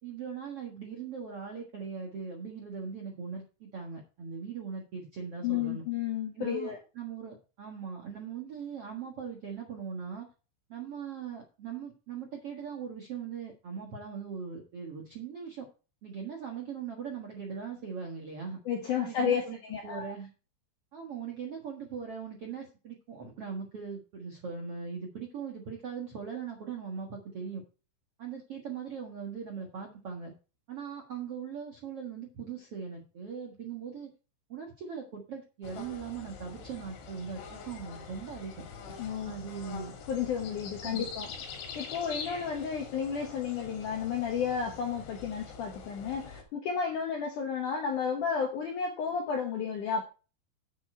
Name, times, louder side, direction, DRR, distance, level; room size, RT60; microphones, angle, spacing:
voice 1, 0.0-5.8 6.3-10.3 10.7-15.7 16.0-18.6 19.0-20.3 20.9-27.6 28.2-30.3 30.7-34.1 34.5-38.6 39.2-39.9 40.8-41.1, right 6 dB, 60° right, 1.5 m, -40 dB
voice 2, 5.4-6.8 18.7-20.1 39.0-39.3 40.1-41.3 41.8-50.0, left 7 dB, 70° left, 2.0 m, -32 dB
sound 1, 35.6-46.4, left 5 dB, 85° left, 4.8 m, -44 dB
9.4 x 7.7 x 4.4 m
omnidirectional pair, 5.3 m